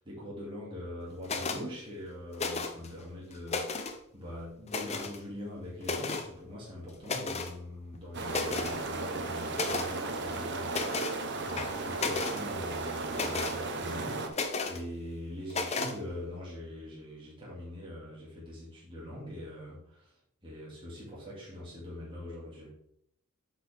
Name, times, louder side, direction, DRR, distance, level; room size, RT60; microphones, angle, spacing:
voice 1, 0.0-11.0 11.4-20.1 20.4-22.7, left 1 dB, 25° right, -6 dB, 2.3 m, -43 dB
sound 1, 1.2-1.6 2.3-2.9 3.3-4.0 4.7-5.2 5.8-6.3 7.0-7.5 7.9-8.0 8.3-8.8 9.5-9.9 10.7-11.2 11.6-12.4 13.1-13.6 14.3-14.8 15.5-15.9, left 3 dB, 30° left, 0.6 m, -33 dB
sound 2, 8.1-14.3, right 3 dB, 50° right, 0.9 m, -35 dB
8.3 x 5.4 x 3.5 m, 0.73 s
head